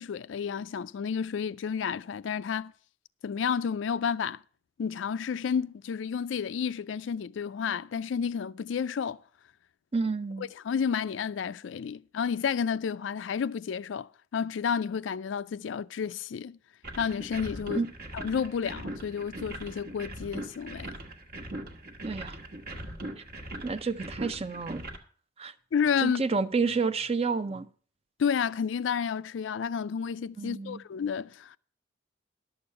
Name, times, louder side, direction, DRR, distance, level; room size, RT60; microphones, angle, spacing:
voice 1, 0.0-2.7 3.2-4.4 4.8-9.2 10.6-16.6 17.0-17.8 18.1-20.9 25.7-26.2 28.2-31.6, left 7 dB, 80° left, 0.4 m, -31 dB
voice 2, 9.9-10.5 17.7-17.9 22.0-22.4 23.2-23.3 23.6-24.8 25.4-25.5 26.0-27.7 30.4-30.8, right 4 dB, 35° right, 0.5 m, -30 dB
sound 1, 16.8-25.0, right 1 dB, 55° right, 1.3 m, -40 dB
11.5 x 7.0 x 5.5 m
head